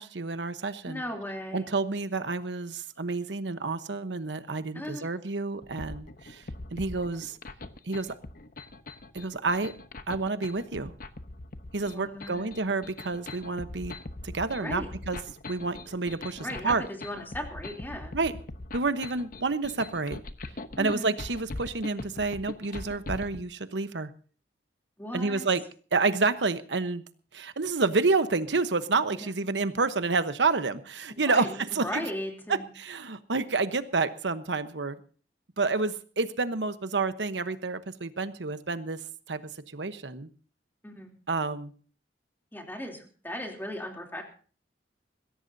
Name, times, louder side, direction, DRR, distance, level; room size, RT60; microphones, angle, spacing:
voice 1, 0.0-1.0 1.5-6.4 6.7-7.4 7.8-8.2 9.1-9.7 10.1-10.9 11.7-13.9 14.2-15.2 15.5-16.9 18.1-18.3 18.7-20.2 20.8-24.1 25.1-25.6 25.9-27.0 27.3-32.1 32.5-35.0 35.6-39.0 39.3-39.4 39.7-40.3 41.3-41.7, right 3 dB, 90° right, 11 dB, 1.0 m, -29 dB
voice 2, 0.9-1.7 4.7-5.1 11.9-12.5 14.6-14.9 16.4-18.1 20.8-21.1 25.0-25.5 29.1-29.3 31.1-32.7 40.8-41.1 42.5-44.2, left 1 dB, 10° left, 2 dB, 3.1 m, -37 dB
sound 1, 5.6-23.4, left 2 dB, 55° left, 1.0 m, -41 dB
22.0 x 16.5 x 2.7 m, 0.41 s
head